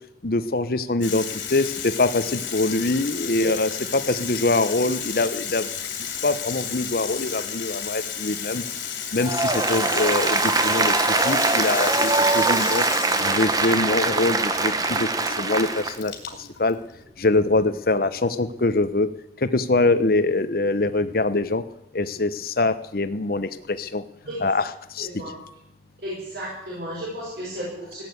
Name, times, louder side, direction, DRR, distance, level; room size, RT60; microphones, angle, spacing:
voice 1, 0.2-5.7 6.2-8.6 9.1-12.8 13.2-16.1 16.6-16.8 17.2-19.1 19.4-21.6 21.9-24.0 24.4-24.7 24.9-25.1, left 2 dB, 50° left, 12 dB, 0.9 m, -24 dB
Water tap faucet / Sink (filling or washing), 1.0-18.5, left 8 dB, 90° left, 2.9 m, -33 dB
Applause, 9.2-16.0, right 3 dB, 20° right, 0.9 m, -22 dB
voice 2, 25.0-25.4 26.0-28.0, equal, 60° right, -6 dB, 6.2 m, -33 dB
16.5 x 9.1 x 8.0 m, 0.83 s
head